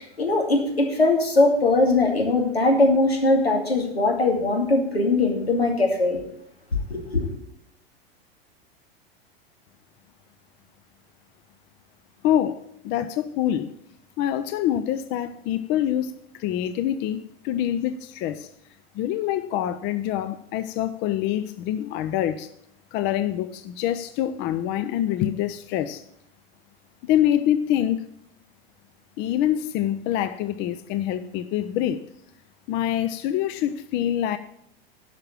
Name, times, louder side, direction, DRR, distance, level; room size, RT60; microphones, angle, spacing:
voice 1, 0.0-6.2 6.9-7.3, left 2 dB, 85° left, 2.5 m, -21 dB
voice 2, 12.2-13.7 14.2-16.1 16.4-18.5 18.9-22.5 22.9-26.0 27.0-28.0 29.2-32.0 32.7-34.4, left 11 dB, 35° left, 0.6 m, -25 dB
11.5 x 6.0 x 8.7 m
figure-of-eight pair, 90°, 30 cm